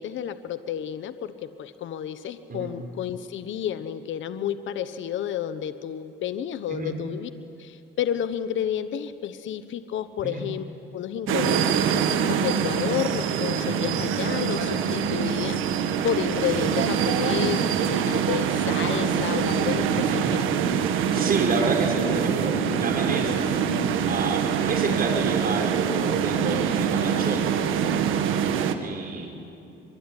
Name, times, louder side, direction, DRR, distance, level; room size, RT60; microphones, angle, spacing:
voice 1, 0.0-7.3 7.6-10.6 10.9-20.4, left 10 dB, 75° left, 11 dB, 1.1 m, -31 dB
sound 1, 11.3-28.7, right 7 dB, 90° right, 1.6 m, -24 dB
voice 2, 21.1-23.5 24.1-27.6 28.8-29.3, right 3 dB, 45° right, 2 dB, 5.6 m, -29 dB
24.5 x 24.0 x 9.9 m, 2.7 s
cardioid pair, 90°, 20 cm